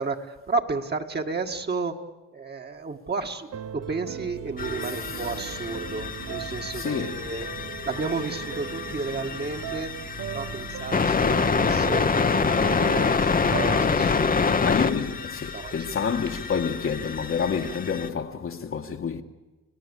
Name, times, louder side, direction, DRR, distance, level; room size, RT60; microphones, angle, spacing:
voice 1, 0.0-2.0 2.3-7.5 7.9-10.0 10.3-12.1 12.6-14.8 15.5-15.9, right 4 dB, 35° right, 2.0 m, -32 dB
sound 1, 3.5-15.6, right 10 dB, 55° right, 0.9 m, -38 dB
sound 2, 4.6-18.1, left 5 dB, 30° left, 1.1 m, -27 dB
voice 2, 4.8-5.5 6.7-7.3 14.6-19.2, left 6 dB, 45° left, 1.6 m, -29 dB
30.0 x 17.5 x 8.4 m
cardioid pair, 90°, 30 cm